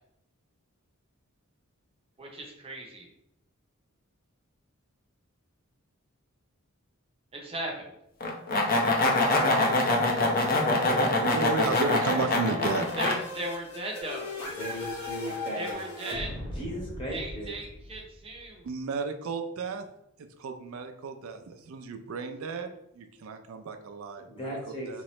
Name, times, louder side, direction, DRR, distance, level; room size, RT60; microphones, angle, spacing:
voice 1, 2.2-3.1 7.3-7.9 13.0-14.3 15.5-16.3 17.1-18.7, right 1 dB, 25° right, 0 dB, 0.6 m, -37 dB
sound 1, 8.2-13.1, left 2 dB, 40° left, 0.6 m, -24 dB
voice 2, 11.0-12.9 18.6-19.9 20.2-22.7 23.0-24.6 24.9-25.0, right 4 dB, 70° right, 6 dB, 0.4 m, -33 dB
sound 2, 12.7-18.3, left 2 dB, 80° left, 1.1 m, -38 dB
voice 3, 14.6-15.7 16.4-17.5 24.2-25.0, equal, 25° left, -3 dB, 1.1 m, -37 dB
3.6 x 3.0 x 3.0 m, 0.81 s
head